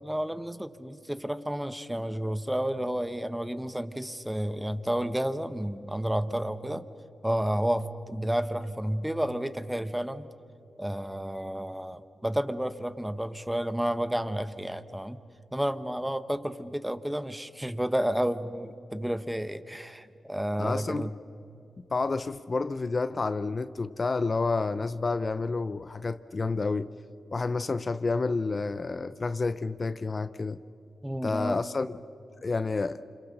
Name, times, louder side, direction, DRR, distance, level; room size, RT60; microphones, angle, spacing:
voice 1, 0.0-6.9 7.2-10.3 10.8-15.2 15.5-21.1 31.0-31.6, right 1 dB, 5° right, 12 dB, 1.1 m, -31 dB
voice 2, 20.6-21.1 21.9-26.9 27.3-30.6 31.2-31.9 32.4-33.0, left 3 dB, 40° left, 13 dB, 0.6 m, -29 dB
28.5 x 27.0 x 6.7 m, 2.8 s
cardioid pair, 70°, 0 cm